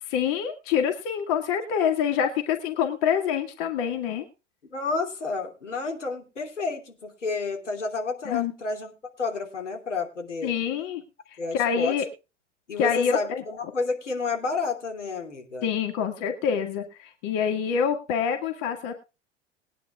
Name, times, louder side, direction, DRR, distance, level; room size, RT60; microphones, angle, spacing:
voice 1, 0.0-4.3 8.3-8.5 10.4-11.0 11.3-12.0 12.8-13.4 15.6-18.9, left 7 dB, 50° left, 5 dB, 2.1 m, -26 dB
voice 2, 4.7-8.9 9.2-10.5 11.4-11.9 12.7-15.7, left 4 dB, 80° left, 3 dB, 3.0 m, -30 dB
21.5 x 10.0 x 2.4 m, 0.30 s
figure-of-eight pair, 85°, 36 cm